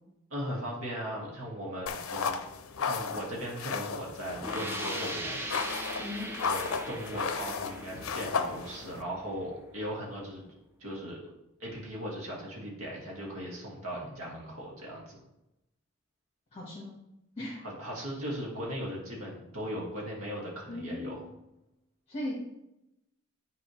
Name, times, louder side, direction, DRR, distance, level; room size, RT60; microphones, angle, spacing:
voice 1, 0.3-2.4 2.8-5.4 6.4-10.4 10.8-11.2 11.6-15.2 17.6-21.2, equal, 90° right, -4 dB, 2.1 m, -38 dB
sound 1, 1.9-9.0, left 5 dB, 80° left, 0.5 m, -35 dB
sound 2, 4.4-9.9, right 1 dB, 10° right, 0.6 m, -40 dB
voice 2, 16.5-16.9 17.4-17.6 20.7-21.2 22.1-22.5, left 1 dB, 30° left, -5 dB, 1.4 m, -37 dB
9.7 x 4.0 x 3.2 m, 0.89 s
head